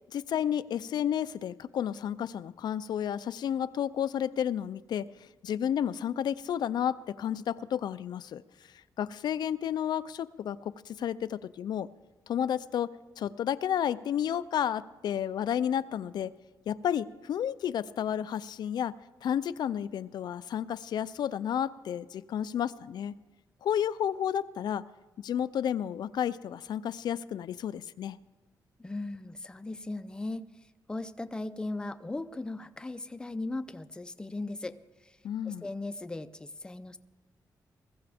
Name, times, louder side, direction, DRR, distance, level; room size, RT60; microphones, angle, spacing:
voice 1, 0.1-8.4 9.0-11.9 12.3-16.3 16.7-18.9 19.2-23.1 23.6-24.8 25.2-28.2 35.2-35.7, left 9 dB, 75° left, 14 dB, 0.4 m, -31 dB
voice 2, 28.8-30.5 30.9-34.8 35.0-35.2 35.4-37.0, left 2 dB, 10° left, 11 dB, 0.5 m, -37 dB
20.5 x 15.0 x 3.5 m, 1.2 s
wide cardioid pair, 155°, 7 cm